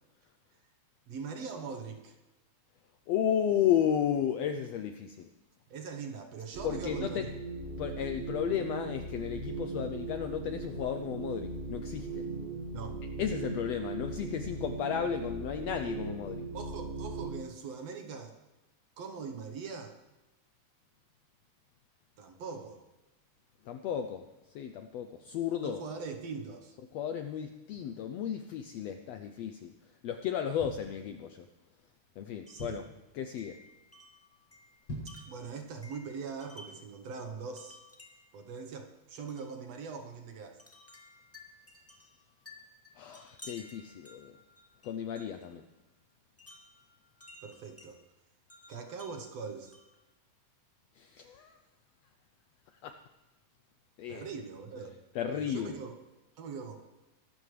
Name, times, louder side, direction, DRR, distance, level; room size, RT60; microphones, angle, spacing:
voice 1, 1.1-2.2 5.7-7.3 12.7-13.0 16.5-18.4 19.0-20.0 22.2-22.8 25.6-26.7 32.5-32.8 35.3-37.8 38.3-40.6 47.4-48.0 48.7-49.7 54.1-54.9 55.3-56.0 56.4-56.8, right 5 dB, 60° right, 6 dB, 2.0 m, -41 dB
voice 2, 3.1-5.3 6.6-7.2 7.8-12.3 13.2-16.5 23.6-24.2 24.5-25.8 26.9-29.7 30.0-31.5 32.2-32.9 33.1-33.6 42.9-44.4 44.8-45.6 50.9-51.6 52.8-52.9 54.0-54.3 55.1-55.8, left 9 dB, 80° left, 7 dB, 1.5 m, -33 dB
sound 1, 6.5-17.4, right 3 dB, 40° right, 1.1 m, -39 dB
sound 2, 30.6-31.5 32.0-32.1 32.3-33.1 33.5-33.8 34.1-34.2 34.7-35.3 35.7-35.8, equal, 40° left, 6.7 m, -43 dB
Wind chime, 32.5-32.8 33.4-36.9 37.6-38.4 39.3-39.5 40.6-45.5 46.4-47.9 48.5-50.0, left 1 dB, 10° left, 1.0 m, -55 dB
23.5 x 12.5 x 3.3 m, 1.1 s
omnidirectional pair, 3.6 m